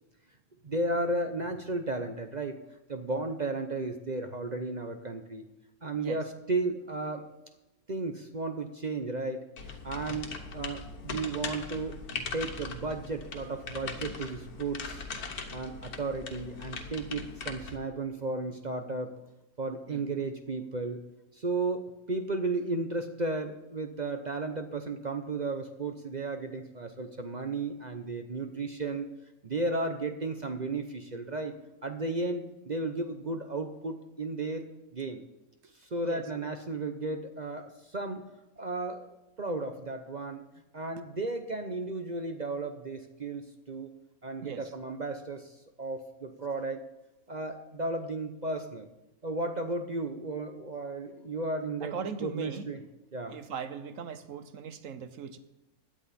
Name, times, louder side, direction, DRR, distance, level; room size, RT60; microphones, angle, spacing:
voice 1, 0.6-2.6 2.9-5.4 5.8-7.2 7.9-12.0 12.3-15.0 15.5-19.2 19.6-21.0 21.3-29.1 29.4-31.5 31.8-34.6 34.9-35.2 35.8-38.2 38.6-40.4 40.7-43.4 43.7-43.9 44.2-46.8 47.3-48.9 49.2-51.9 52.2-52.8 53.1-53.4, right 2 dB, 40° right, 6 dB, 0.7 m, -34 dB
sound 1, 9.6-17.8, left 4 dB, 85° left, 1.7 m, -40 dB
voice 2, 51.8-52.7 53.3-55.4, right 6 dB, 65° right, 11 dB, 1.2 m, -39 dB
16.5 x 10.0 x 4.2 m, 0.95 s
omnidirectional pair, 1.5 m